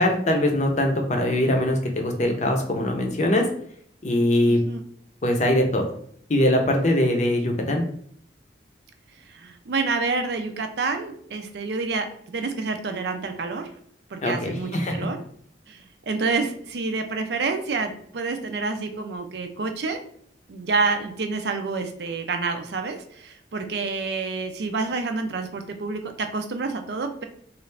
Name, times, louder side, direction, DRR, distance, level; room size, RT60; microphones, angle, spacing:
voice 1, 0.0-3.5 4.0-4.6 5.2-5.8 6.3-7.8 14.2-15.0, left 1 dB, 40° left, 3 dB, 0.6 m, -22 dB
voice 2, 4.4-4.8 9.3-13.7 14.1-15.2 15.7-20.0 20.5-27.2, right 4 dB, 65° right, 6 dB, 0.5 m, -28 dB
3.2 x 2.5 x 3.2 m, 0.63 s
head